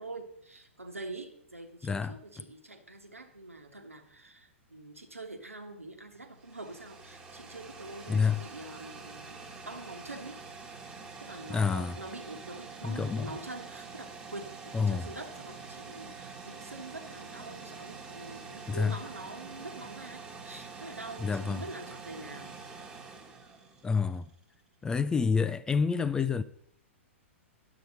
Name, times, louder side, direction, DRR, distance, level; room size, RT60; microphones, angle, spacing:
voice 1, 0.0-10.4 11.2-22.6, right 2 dB, 85° right, 1.3 m, -45 dB
voice 2, 1.8-2.2 8.1-8.4 11.5-12.0 12.8-13.3 14.7-15.1 18.7-19.0 21.2-21.6 23.8-24.3 24.8-26.4, left 5 dB, 10° left, 0.4 m, -28 dB
sound 1, 6.1-24.3, right 4 dB, 15° right, 1.3 m, -46 dB
10.0 x 6.8 x 5.4 m
figure-of-eight pair, 110°, 7 cm